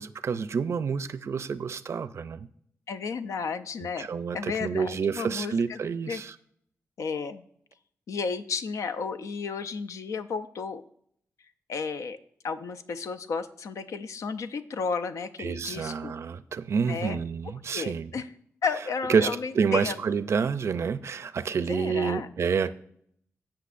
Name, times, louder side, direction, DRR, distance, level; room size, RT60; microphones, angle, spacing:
voice 1, 0.0-2.5 4.0-6.4 15.4-18.1 19.1-22.7, right 6 dB, 60° right, 0.4 m, -28 dB
voice 2, 2.9-4.1 4.3-5.8 6.1-6.2 7.0-7.4 8.1-10.8 11.7-12.2 12.4-16.1 16.9-17.2 17.7-18.3 18.6-20.0 21.7-22.3, left 5 dB, 85° left, 0.6 m, -33 dB
16.0 x 5.9 x 2.5 m
wide cardioid pair, 110°, 5 cm